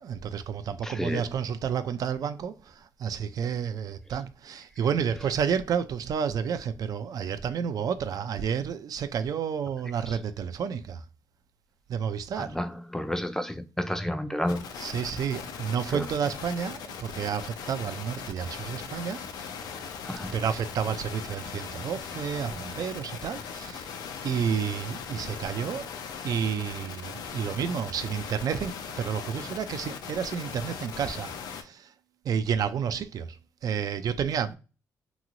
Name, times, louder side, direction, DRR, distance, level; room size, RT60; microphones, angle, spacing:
voice 1, 0.0-11.0 11.9-12.6 14.8-19.5 20.3-23.9 24.2-25.9 26.2-31.9 32.2-33.4 33.6-34.5, right 7 dB, 65° right, 0.4 m, -30 dB
voice 2, 0.8-1.3 10.1-10.2 12.4-14.6 15.9-16.1 20.0-20.3, left 1 dB, 5° left, 0.4 m, -31 dB
sound 1, 14.5-31.6, left 6 dB, 80° left, 0.5 m, -39 dB
3.0 x 2.7 x 2.5 m
cardioid pair, 75°, 7 cm